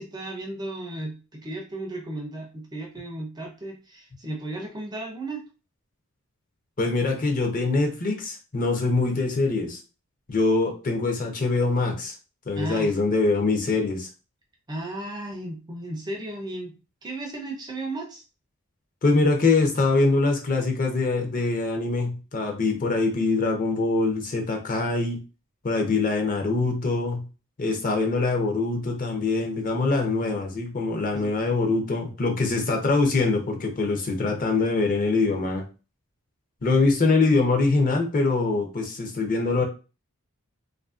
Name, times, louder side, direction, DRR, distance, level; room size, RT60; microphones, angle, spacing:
voice 1, 0.0-5.4 12.6-12.9 14.7-16.7 17.0-18.2 31.1-31.3, right 1 dB, 20° right, 1 dB, 0.4 m, -34 dB
voice 2, 6.8-9.8 10.3-12.1 12.5-14.1 19.0-25.2 25.6-27.2 27.6-35.7 36.6-39.6, left 3 dB, 40° left, 3 dB, 0.5 m, -23 dB
2.6 x 2.4 x 2.4 m, 0.33 s
head